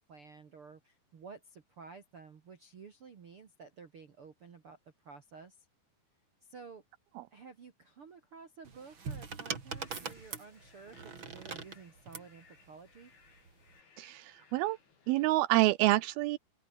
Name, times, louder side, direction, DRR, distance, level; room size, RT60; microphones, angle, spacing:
voice 1, 0.0-5.6 6.4-6.8 7.3-13.1, right 5 dB, 50° right, 1.6 m, -52 dB
sound 1, 8.6-12.3 13.4-13.8, right 5 dB, 30° right, 3.2 m, -42 dB
sound 2, 9.6-15.3, left 5 dB, 80° left, 8.7 m, -64 dB
voice 2, 14.0-14.8 15.1-16.4, right 17 dB, 85° right, 2.1 m, -27 dB
open air
omnidirectional pair, 5.2 m